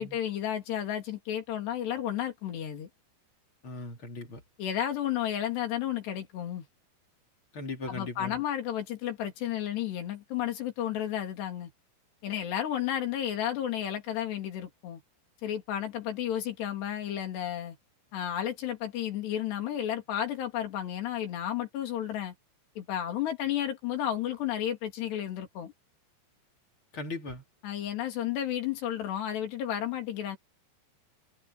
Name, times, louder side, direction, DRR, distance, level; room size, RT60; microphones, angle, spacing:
voice 1, 0.0-2.9 4.6-6.7 7.9-11.7 12.2-15.0 15.4-17.8 18.1-22.3 22.8-25.7 27.6-30.4, left 11 dB, 70° left, 5.2 m, -32 dB
voice 2, 3.6-4.4 7.5-8.4 26.9-27.4, left 3 dB, 30° left, 3.4 m, -38 dB
omnidirectional pair, 5.1 m